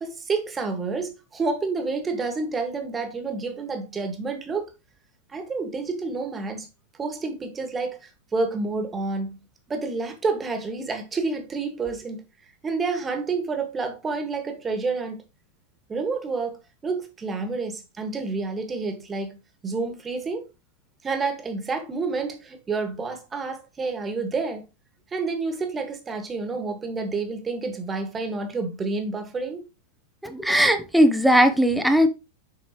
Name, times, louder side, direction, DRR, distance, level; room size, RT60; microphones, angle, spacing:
voice 1, 0.0-4.7 5.3-6.7 7.0-9.4 9.7-12.2 12.6-15.2 15.9-16.6 16.8-19.4 19.6-20.5 21.0-24.6 25.1-29.7, right 4 dB, 20° right, 1.8 m, -29 dB
voice 2, 30.2-32.1, equal, ahead, 1.0 m, -18 dB
8.3 x 5.7 x 3.1 m
figure-of-eight pair, 90°, 0 cm